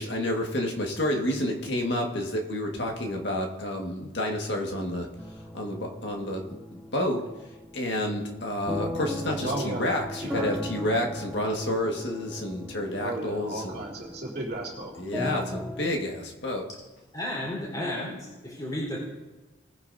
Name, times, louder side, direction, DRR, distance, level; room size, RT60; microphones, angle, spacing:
voice 1, 0.0-13.8 14.9-16.7, left 1 dB, 55° left, 1 dB, 1.8 m, -30 dB
sound 1, 5.2-15.9, left 1 dB, 5° right, 0.6 m, -38 dB
voice 2, 9.4-9.8 10.2-10.5 12.9-14.9, right 1 dB, 50° right, -4 dB, 3.0 m, -34 dB
voice 3, 17.1-19.0, left 1 dB, 20° left, -6 dB, 4.1 m, -33 dB
20.0 x 10.0 x 2.7 m, 1.1 s
head